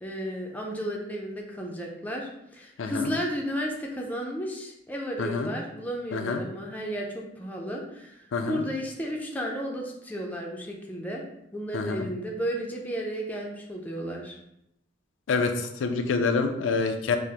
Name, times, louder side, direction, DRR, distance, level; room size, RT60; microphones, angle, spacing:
voice 1, 0.0-8.2 8.4-11.2 11.5-14.3, equal, 10° left, -1 dB, 0.4 m, -33 dB
voice 2, 2.8-3.1 5.2-5.5 6.1-6.4 8.3-8.6 11.7-12.1 15.3-17.2, left 4 dB, 80° left, 6 dB, 0.4 m, -27 dB
4.8 x 2.0 x 2.8 m, 0.80 s
head